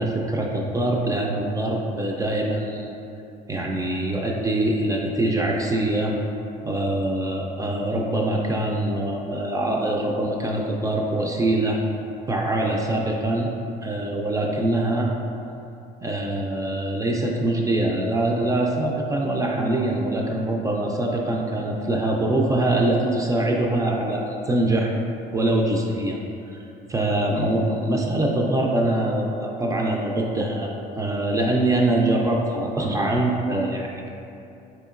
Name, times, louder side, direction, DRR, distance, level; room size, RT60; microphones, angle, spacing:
voice 1, 0.0-2.9 3.5-6.1 6.6-11.8 12.3-13.5 13.8-15.1 16.0-24.9 25.3-26.2 26.5-26.6 26.9-34.1, right 1 dB, 20° right, -1 dB, 0.3 m, -23 dB
4.3 x 2.8 x 2.4 m, 2.7 s
cardioid pair, 110°, 17 cm